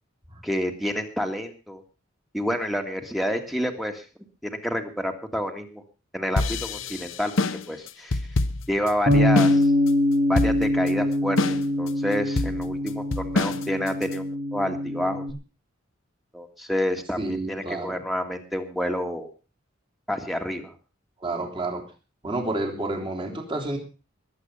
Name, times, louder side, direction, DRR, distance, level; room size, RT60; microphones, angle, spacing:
voice 1, 0.4-1.8 2.3-4.0 4.4-5.8 6.1-8.2 8.7-9.7 10.3-15.2 16.3-17.2 17.5-19.3 20.1-20.7, equal, ahead, 5 dB, 1.9 m, -29 dB
sound 1, 6.4-9.6 9.9-10.0 10.4-10.9 11.4-11.9 12.4-14.1, left 2 dB, 90° left, 1.1 m, -26 dB
Bass guitar, 9.1-15.3, left 1 dB, 55° right, 2.4 m, -23 dB
voice 2, 17.2-18.0 21.2-21.8 22.2-23.8, right 2 dB, 25° right, 3 dB, 3.2 m, -30 dB
21.5 x 8.2 x 5.5 m, 0.34 s
head